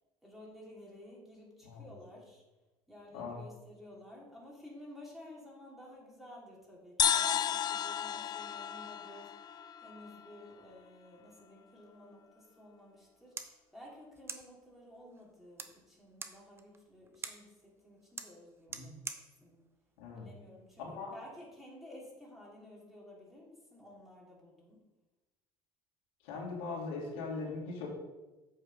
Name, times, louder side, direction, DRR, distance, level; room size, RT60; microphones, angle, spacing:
voice 1, 0.2-2.4 2.9-19.7 20.1-24.8, left 1 dB, ahead, -5 dB, 3.1 m, -53 dB
sound 1, 7.0-10.5, left 9 dB, 35° left, 0.4 m, -33 dB
sound 2, 12.9-21.0, right 4 dB, 20° right, 0.8 m, -49 dB
voice 2, 20.0-20.3 20.8-21.1 26.2-27.9, left 4 dB, 85° left, -3 dB, 2.9 m, -40 dB
8.1 x 5.4 x 5.5 m, 1.1 s
supercardioid pair, 105°, 12 cm